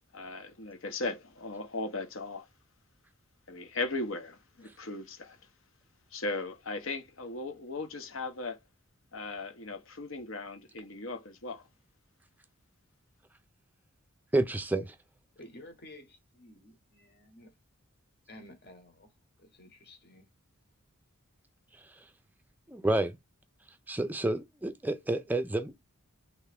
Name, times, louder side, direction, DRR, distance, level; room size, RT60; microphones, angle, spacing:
voice 1, 0.1-2.5 3.5-5.4 6.1-8.6 9.1-11.7, left 3 dB, 65° left, 0.9 m, -37 dB
voice 2, 14.3-14.9 22.7-23.2 23.9-25.8, right 2 dB, 10° right, 0.4 m, -29 dB
voice 3, 15.3-17.5 18.3-19.1 19.4-20.3, left 1 dB, 45° left, 1.2 m, -52 dB
3.5 x 3.1 x 3.4 m
head